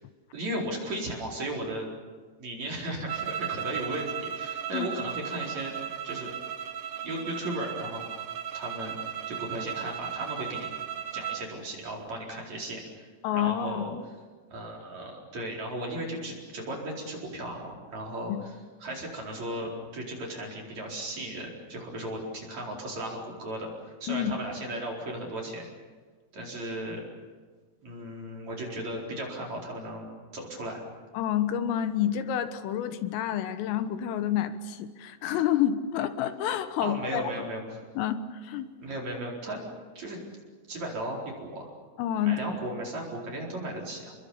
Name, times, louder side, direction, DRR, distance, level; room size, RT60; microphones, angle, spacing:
voice 1, 0.3-1.9 2.4-5.7 6.0-6.3 7.0-8.0 8.5-10.7 11.1-13.9 14.5-18.3 18.8-23.7 24.0-25.7 26.3-27.0 27.8-30.8 36.8-37.8 38.8-39.6 40.0-40.2 40.7-41.7 42.2-44.1, right 1 dB, 35° right, -1 dB, 5.3 m, -36 dB
sound 1, 3.1-11.5, right 9 dB, 75° right, 1.9 m, -36 dB
voice 2, 13.2-14.0 18.3-18.4 24.1-24.3 31.2-37.3 38.0-38.7 42.0-42.6, left 10 dB, 85° left, 10 dB, 3.8 m, -29 dB
28.5 x 22.5 x 7.2 m, 1.5 s
omnidirectional pair, 5.7 m